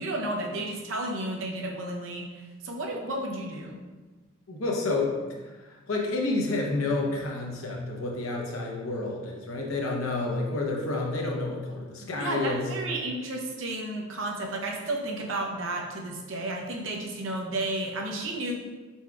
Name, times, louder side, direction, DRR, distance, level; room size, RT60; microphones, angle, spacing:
voice 1, 0.0-3.8 12.2-18.5, right 2 dB, 70° right, 0 dB, 0.7 m, -32 dB
voice 2, 4.5-5.1 5.4-12.7, left 2 dB, 90° left, -1 dB, 0.8 m, -29 dB
4.5 x 4.4 x 2.3 m, 1.3 s
head